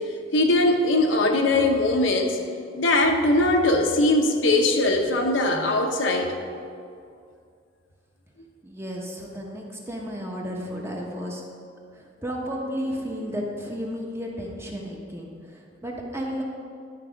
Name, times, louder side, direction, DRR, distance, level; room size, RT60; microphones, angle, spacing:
voice 1, 0.3-2.4 2.7-6.3, left 2 dB, 70° left, 3 dB, 0.8 m, -21 dB
voice 2, 8.6-11.4 11.9-16.4, equal, 15° right, -1 dB, 0.9 m, -33 dB
11.5 x 4.8 x 5.0 m, 2.3 s
head